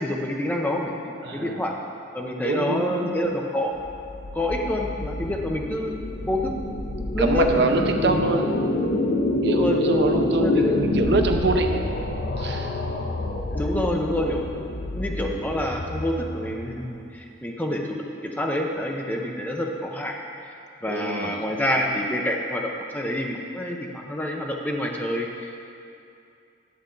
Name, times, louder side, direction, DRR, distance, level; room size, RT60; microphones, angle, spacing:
voice 1, 0.0-1.7 2.1-3.7 4.3-6.5 7.1-7.6 7.9-8.2 9.4-10.7 13.5-14.4 14.9-20.2 20.8-25.5, left 1 dB, 10° left, 0 dB, 0.6 m, -27 dB
voice 2, 1.2-1.6 2.4-3.1 7.2-8.5 9.4-11.8 12.4-12.8 20.9-21.4, right 3 dB, 55° right, 4 dB, 0.6 m, -25 dB
sound 1, 3.8-17.0, left 2 dB, 55° left, 0.6 m, -27 dB
10.5 x 7.0 x 3.8 m, 2.5 s
head